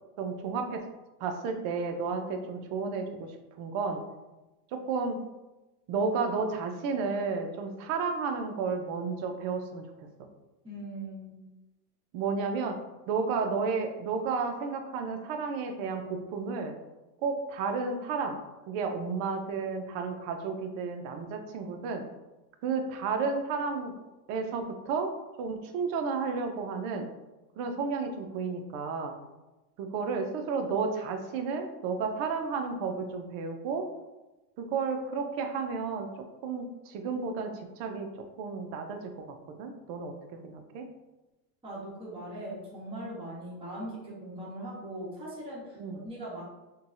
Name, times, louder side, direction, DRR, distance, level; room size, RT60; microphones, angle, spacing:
voice 1, 0.2-0.9 1.2-4.0 4.7-5.2 5.9-9.8 12.1-12.8 13.1-16.7 17.2-18.4 18.7-22.0 22.6-24.0 24.3-25.1 25.4-27.1 27.6-29.2 29.8-33.9 34.6-38.1 38.4-39.2 39.6-40.9 45.8-46.0, right 5 dB, 45° right, 5 dB, 0.5 m, -32 dB
voice 2, 10.6-11.3 41.6-45.8 46.0-46.4, right 1 dB, 10° right, -7 dB, 1.2 m, -40 dB
3.8 x 2.3 x 2.4 m, 1.1 s
hypercardioid pair, 105°, 49 cm